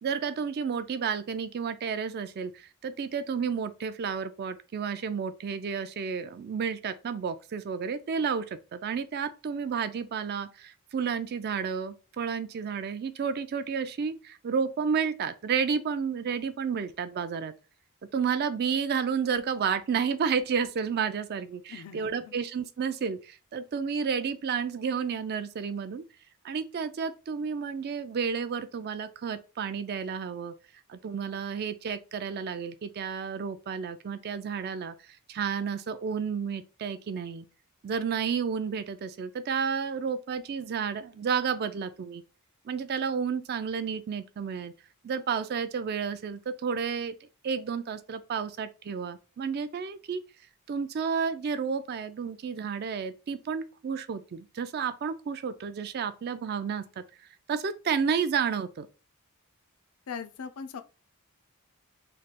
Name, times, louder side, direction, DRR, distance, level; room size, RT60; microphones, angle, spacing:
voice 1, 0.0-17.5 18.1-26.0 26.4-30.5 30.9-34.9 35.3-37.5 37.8-42.2 42.7-44.7 45.0-47.2 47.4-50.2 50.7-57.0 57.5-58.9, right 6 dB, 45° right, 0.3 m, -31 dB
voice 2, 21.7-22.3 60.1-60.8, left 6 dB, 70° left, 0.4 m, -40 dB
3.2 x 2.2 x 4.0 m
head